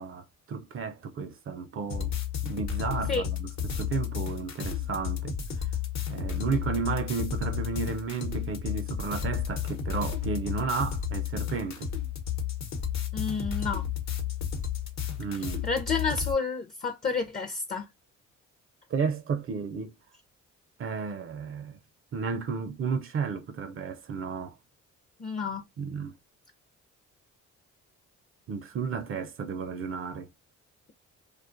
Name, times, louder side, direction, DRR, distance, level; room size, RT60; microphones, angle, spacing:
voice 1, 0.0-2.1 2.4-5.4 6.1-11.9 15.2-15.7 18.9-19.9 20.8-21.8 22.1-24.6 25.8-26.1 28.5-30.3, right 5 dB, 45° right, 0.5 m, -33 dB
sound 1, 1.9-16.3, left 9 dB, 65° left, 0.8 m, -32 dB
voice 2, 13.1-13.9 15.6-17.9 25.2-25.6, left 4 dB, 30° left, 0.5 m, -30 dB
2.4 x 2.3 x 2.4 m
cardioid pair, 90°, 30 cm